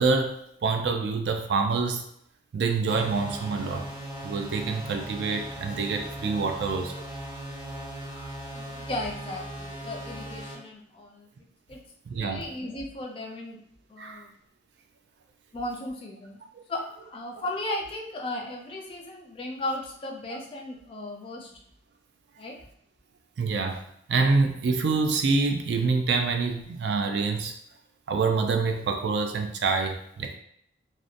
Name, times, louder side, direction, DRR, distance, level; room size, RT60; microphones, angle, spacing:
voice 1, 0.0-2.1 2.5-3.9 4.2-6.9 12.1-12.5 14.0-14.2 16.6-16.7 23.4-23.8 24.1-27.5 28.1-30.4, right 4 dB, 65° right, 5 dB, 0.3 m, -26 dB
sound 1, 2.9-10.5, right 1 dB, 25° right, 0.7 m, -38 dB
voice 2, 8.5-11.3 11.7-11.8 12.1-13.6 13.9-14.3 15.5-16.4 16.7-21.5 22.4-22.6, left 1 dB, 30° left, 0 dB, 0.3 m, -36 dB
2.7 x 2.1 x 2.5 m, 0.71 s
head